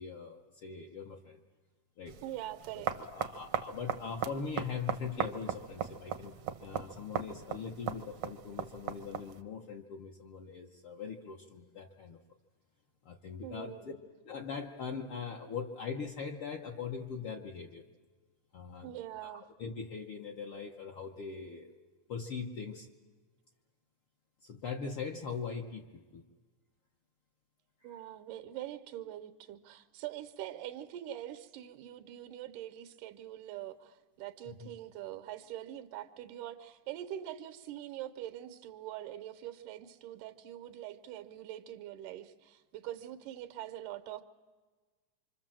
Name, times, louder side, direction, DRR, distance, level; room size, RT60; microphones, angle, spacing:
voice 1, 0.0-1.4 2.0-2.1 2.7-12.2 13.0-13.9 14.2-17.8 18.5-18.9 19.2-21.7 22.1-22.9 24.4-26.2 27.8-27.9 34.6-34.7, left 5 dB, 60° left, 0 dB, 1.5 m, -41 dB
sound 1, 2.1-9.4, right 9 dB, 65° right, 1.4 m, -38 dB
voice 2, 2.2-3.0 13.4-13.9 18.8-19.5 27.8-44.2, right 12 dB, 85° right, 9 dB, 2.5 m, -44 dB
26.0 x 25.5 x 7.5 m, 1.4 s
omnidirectional pair, 3.6 m